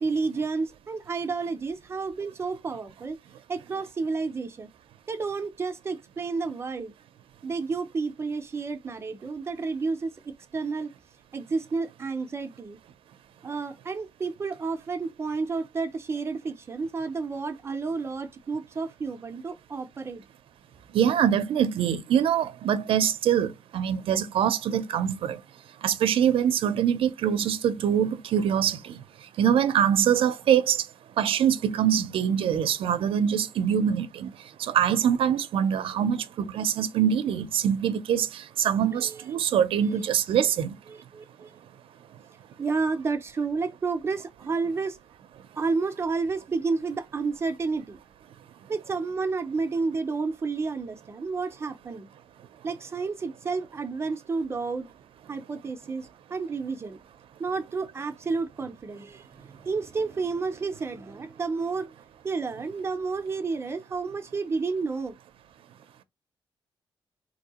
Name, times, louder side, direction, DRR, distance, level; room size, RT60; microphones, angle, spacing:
voice 1, 0.0-3.2 3.5-4.7 5.1-6.9 7.4-10.9 11.3-12.8 13.4-20.2 38.9-39.2 39.8-40.0 40.9-41.5 42.6-45.0 45.6-48.0 48.7-52.1 52.6-54.9 55.3-57.0 57.4-61.9 62.2-65.2, right 4 dB, 30° right, 0.5 m, -31 dB
voice 2, 20.9-25.4 25.8-29.0 29.4-30.8 31.2-34.3 34.6-40.7, right 9 dB, 80° right, 0.5 m, -24 dB
3.6 x 2.6 x 2.8 m
wide cardioid pair, 165°, 9 cm